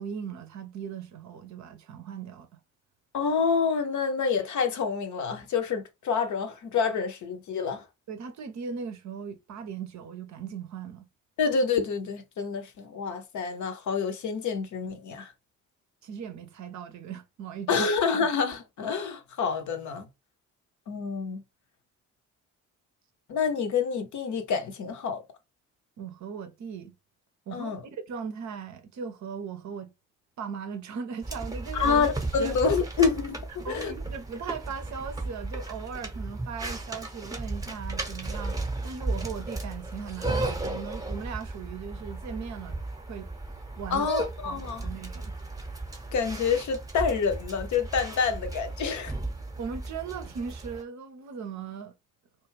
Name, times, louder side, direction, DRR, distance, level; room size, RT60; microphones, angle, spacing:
voice 1, 0.0-2.6 8.1-11.1 16.0-17.9 18.2-18.3 26.0-26.9 27.5-27.7 28.1-29.9 30.4-32.0 32.4-32.5 33.6-42.8 43.1-43.3 43.8-44.1 44.4-45.3 49.6-51.9, right 6 dB, 45° right, 0.7 m, -38 dB
voice 2, 3.1-7.8 11.4-15.3 17.7-20.1 20.9-21.4 23.3-25.2 27.5-27.8 31.8-33.9 43.9-44.9 46.1-49.1, left 5 dB, 45° left, 0.7 m, -27 dB
sound 1, 31.2-50.8, right 2 dB, 10° right, 0.9 m, -35 dB
2.3 x 2.3 x 3.1 m
figure-of-eight pair, 45°, 41 cm